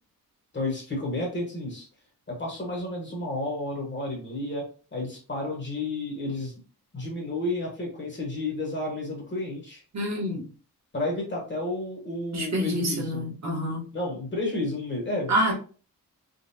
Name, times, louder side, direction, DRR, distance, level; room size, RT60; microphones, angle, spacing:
voice 1, 0.5-1.9 2.3-6.5 6.9-9.8 10.9-13.2 13.9-15.5, left 2 dB, 30° left, -1 dB, 1.0 m, -31 dB
voice 2, 9.9-10.5 12.3-13.8 15.3-15.5, equal, 50° right, -2 dB, 1.1 m, -27 dB
3.7 x 2.2 x 2.7 m, 0.37 s
wide cardioid pair, 175°, 35 cm